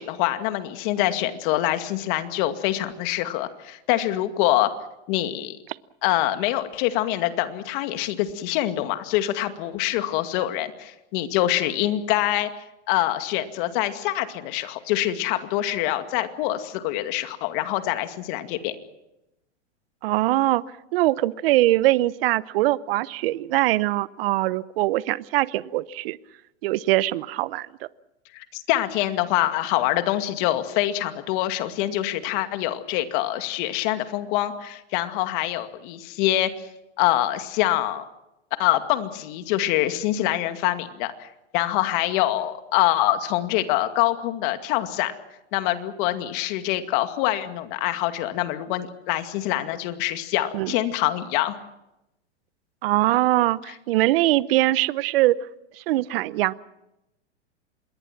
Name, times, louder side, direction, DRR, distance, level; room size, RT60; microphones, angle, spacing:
voice 1, 0.0-4.7 5.1-5.5 6.0-12.5 12.9-18.8 28.3-36.5 37.0-38.0 38.6-41.3 41.5-45.1 45.5-51.6, left 14 dB, 45° left, 8 dB, 2.3 m, -25 dB
voice 2, 20.0-20.6 20.9-26.2 26.6-27.7 50.5-50.7 52.8-55.4 55.8-56.5, right 17 dB, 55° right, 18 dB, 0.9 m, -22 dB
26.5 x 22.0 x 6.1 m, 0.91 s
hypercardioid pair, 135°, 35 cm